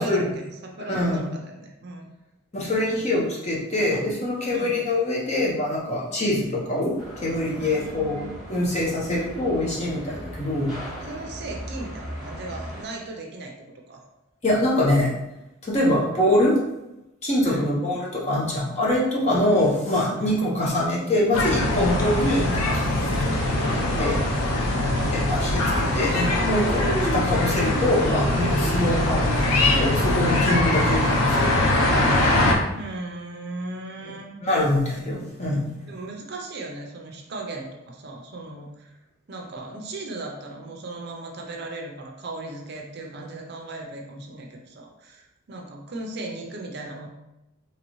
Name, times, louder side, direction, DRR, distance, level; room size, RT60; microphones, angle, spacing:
voice 1, 0.0-2.1 4.5-4.8 7.6-8.4 11.0-13.5 13.9-14.0 15.9-16.1 17.4-18.0 19.3-19.5 20.2-20.4 23.1-23.3 24.9-25.2 32.8-34.4 35.9-38.9 39.3-47.1, right 2 dB, 50° right, 1 dB, 0.6 m, -37 dB
voice 2, 0.9-1.2 2.5-8.2 8.5-10.7 14.4-15.1 15.6-16.5 17.2-23.3 23.6-24.5 25.1-31.6 34.4-36.0, left 1 dB, 30° left, -4 dB, 0.9 m, -24 dB
sound 1, 7.0-12.8, equal, ahead, 1.5 m, -38 dB
sound 2, 21.3-32.5, left 1 dB, 90° left, 0.8 m, -22 dB
4.0 x 3.0 x 3.0 m, 0.93 s
head